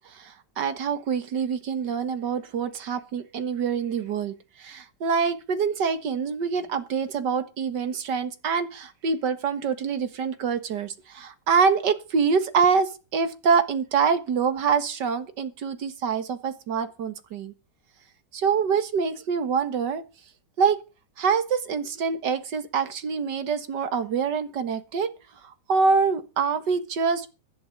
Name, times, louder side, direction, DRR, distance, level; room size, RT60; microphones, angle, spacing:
voice 1, 0.6-4.3 4.6-17.5 18.3-20.0 20.6-20.8 21.2-25.1 25.7-27.3, right 5 dB, 70° right, 2.1 m, -25 dB
15.5 x 11.5 x 5.2 m
omnidirectional pair, 1.9 m